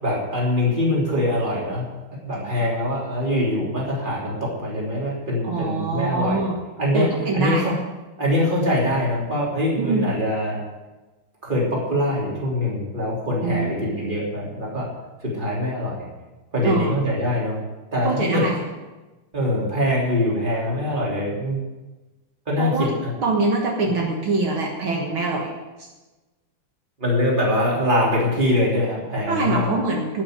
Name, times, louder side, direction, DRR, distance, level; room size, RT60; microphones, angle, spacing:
voice 1, 0.0-1.9 2.2-6.5 6.8-7.1 7.3-7.7 8.2-10.6 11.4-14.9 15.2-16.1 16.5-17.6 17.9-18.4 19.3-21.6 22.5-23.1 27.0-29.8, left 1 dB, 20° right, -4 dB, 3.5 m, -23 dB
voice 2, 5.4-6.6 6.9-7.6 9.8-10.1 13.4-13.7 16.6-16.9 18.0-18.6 22.6-22.9 23.2-25.5 29.3-30.2, right 3 dB, 70° right, 0 dB, 2.3 m, -23 dB
13.0 x 6.5 x 9.4 m, 1.1 s
omnidirectional pair, 2.4 m